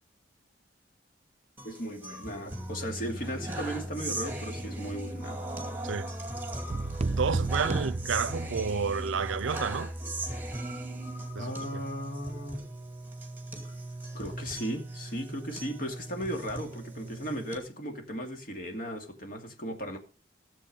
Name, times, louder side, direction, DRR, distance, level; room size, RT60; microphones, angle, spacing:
voice 1, 1.6-5.4 7.5-7.7 11.4-12.6 13.6-13.7 14.1-20.0, equal, 45° left, 2.5 m, -36 dB
sound 1, 1.6-17.6, right 1 dB, 10° right, 2.4 m, -38 dB
sound 2, 6.7-8.9, right 3 dB, 35° right, 0.5 m, -32 dB
voice 2, 7.2-9.9 11.4-11.5, right 5 dB, 90° right, 0.5 m, -30 dB
15.0 x 7.6 x 5.0 m
head